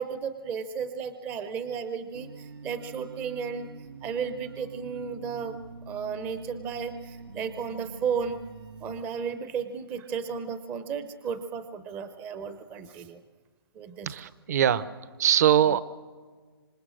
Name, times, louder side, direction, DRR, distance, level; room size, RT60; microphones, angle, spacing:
voice 1, 0.0-3.7 4.0-5.6 5.9-8.4 8.8-13.2 13.8-14.1, right 6 dB, 15° right, 11 dB, 0.6 m, -34 dB
sound 1, 2.1-9.0, right 4 dB, 85° right, 1.3 m, -45 dB
voice 2, 14.1-14.9 15.2-15.8, right 10 dB, 45° right, 16 dB, 0.9 m, -22 dB
26.5 x 25.5 x 6.4 m, 1.5 s
hypercardioid pair, 160°, 13 cm